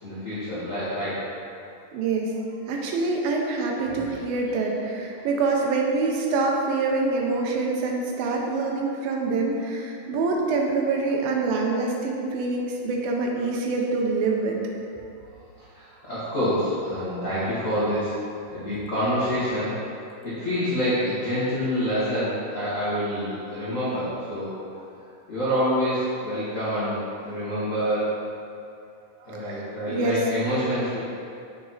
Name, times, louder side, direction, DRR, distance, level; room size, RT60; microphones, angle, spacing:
voice 1, 0.0-1.3 3.8-4.6 15.6-18.2 18.5-19.8 20.2-24.5 25.3-28.1 29.2-31.0, equal, 80° left, -12 dB, 0.7 m, -27 dB
voice 2, 1.9-2.3 2.7-14.6 29.3-30.2, right 3 dB, 85° right, 0 dB, 2.5 m, -25 dB
7.6 x 4.1 x 4.1 m, 2.5 s
omnidirectional pair, 4.0 m